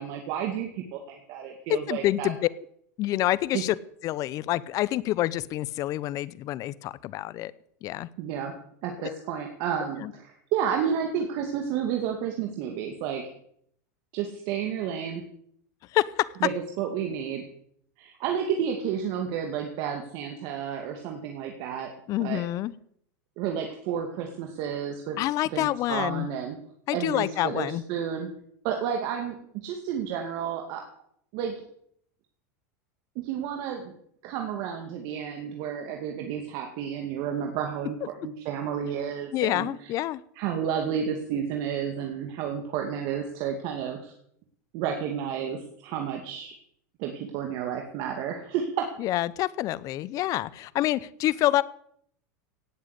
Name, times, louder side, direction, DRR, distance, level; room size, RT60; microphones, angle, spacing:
voice 1, 0.0-2.3 3.5-3.6 8.2-8.5 8.8-13.3 14.1-15.2 16.4-17.4 18.0-21.9 22.2-22.4 23.4-25.2 25.4-26.6 26.9-28.3 28.6-30.8 31.3-31.6 33.2-33.9 34.2-38.0 38.2-39.9 40.4-44.1 44.7-46.5 47.0-48.9, right 8 dB, 50° right, 3 dB, 2.4 m, -31 dB
voice 2, 1.7-2.5 3.0-3.8 4.0-7.5 7.8-8.1 9.0-9.1 10.0-10.1 15.9-16.3 22.1-22.7 25.2-26.3 26.9-27.8 39.3-40.2 49.0-51.6, left 15 dB, 40° left, 19 dB, 0.7 m, -27 dB
17.5 x 7.6 x 8.3 m, 0.67 s
supercardioid pair, 135°, 9 cm